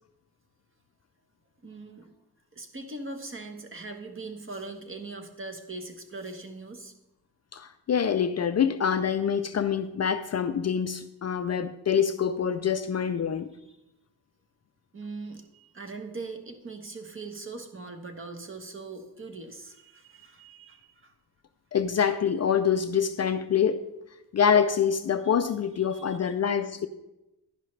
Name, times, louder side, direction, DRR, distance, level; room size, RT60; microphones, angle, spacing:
voice 1, 1.6-2.1 2.5-6.9 13.6-13.8 14.9-21.1 25.9-26.3, right 3 dB, 30° right, 1.2 m, -41 dB
voice 2, 7.5-13.5 21.7-23.8 24.3-26.9, left 7 dB, 45° left, 0.4 m, -25 dB
11.0 x 10.5 x 3.2 m
wide cardioid pair, 160°, 38 cm